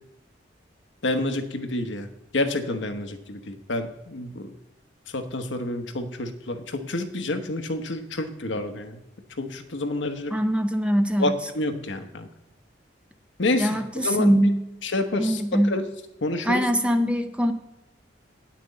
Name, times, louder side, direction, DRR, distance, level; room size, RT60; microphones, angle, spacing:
voice 1, 1.0-2.1 2.3-4.5 5.1-9.0 9.4-10.4 11.2-12.3 13.4-14.5 14.8-15.4 15.7-15.8 16.2-16.6, left 2 dB, 75° left, 6 dB, 1.0 m, -28 dB
voice 2, 10.3-11.3 13.6-14.6 15.2-15.7 16.4-17.5, equal, 5° right, 7 dB, 0.5 m, -22 dB
8.7 x 6.0 x 8.2 m, 0.91 s
head